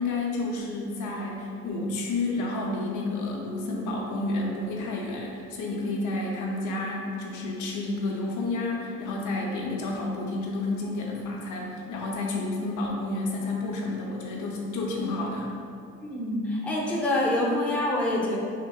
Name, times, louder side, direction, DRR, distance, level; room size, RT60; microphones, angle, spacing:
voice 1, 0.0-15.5, left 2 dB, 80° left, -2 dB, 0.6 m, -30 dB
voice 2, 16.0-18.4, left 1 dB, 5° left, -4 dB, 0.4 m, -26 dB
3.6 x 2.0 x 2.3 m, 2.3 s
cardioid pair, 90°, 30 cm